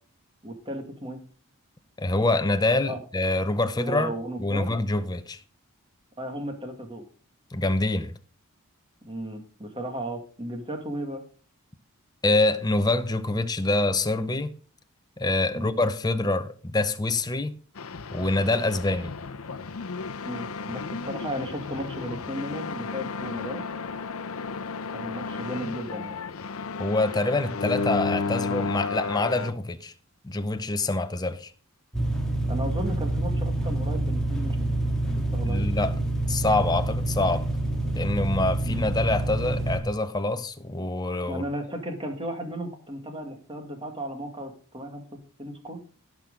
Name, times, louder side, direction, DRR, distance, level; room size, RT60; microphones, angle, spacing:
voice 1, 0.4-1.2 2.9-3.0 3.8-4.7 6.2-7.1 9.0-11.2 15.5-15.7 20.2-23.7 24.9-26.2 32.5-35.7 38.6-38.8 41.3-45.8, right 1 dB, 25° right, 1.9 m, -35 dB
voice 2, 2.0-4.1 4.4-5.4 7.5-8.1 12.2-14.5 15.2-17.5 18.1-19.1 26.8-29.9 30.2-31.5 35.4-35.9 36.3-37.5 37.9-41.4, left 2 dB, 20° left, 0.7 m, -25 dB
sound 1, 17.8-29.5, left 4 dB, 70° left, 0.7 m, -33 dB
sound 2, 31.9-39.8, right 1 dB, 5° left, 1.7 m, -27 dB
17.0 x 6.1 x 3.8 m
head